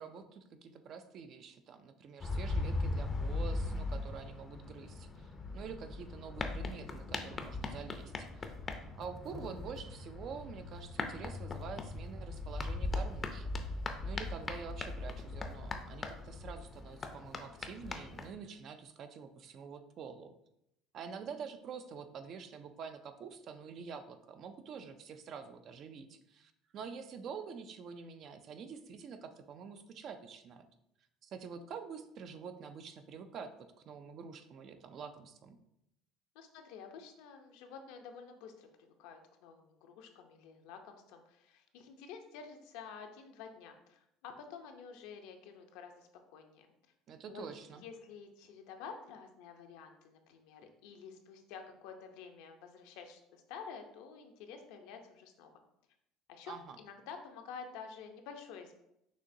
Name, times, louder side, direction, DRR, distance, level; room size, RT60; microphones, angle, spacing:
voice 1, 0.0-8.5 9.0-13.5 14.0-20.3 20.9-30.7 31.2-35.6 47.1-47.8 56.5-56.8, right 6 dB, 50° right, 10 dB, 0.4 m, -47 dB
sound 1, 2.2-18.3, left 2 dB, 25° left, 0.5 m, -39 dB
voice 2, 36.3-46.7 47.3-47.4 47.8-55.5 56.3-58.7, left 6 dB, 80° left, 5 dB, 0.6 m, -50 dB
6.3 x 2.9 x 2.6 m, 0.81 s
supercardioid pair, 115°, 0 cm